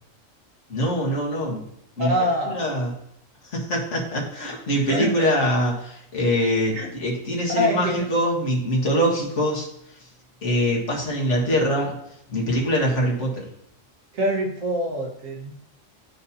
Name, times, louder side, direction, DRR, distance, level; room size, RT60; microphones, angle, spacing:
voice 1, 0.7-1.6 2.0-2.1 2.5-2.9 3.5-9.7 10.4-11.9 12.3-13.5, equal, 65° left, -2 dB, 1.9 m, -23 dB
voice 2, 2.0-2.6 4.7-5.3 6.7-6.9 7.5-8.1 14.1-15.5, equal, 80° right, -1 dB, 1.9 m, -25 dB
12.0 x 4.2 x 2.8 m, 0.74 s
omnidirectional pair, 1.4 m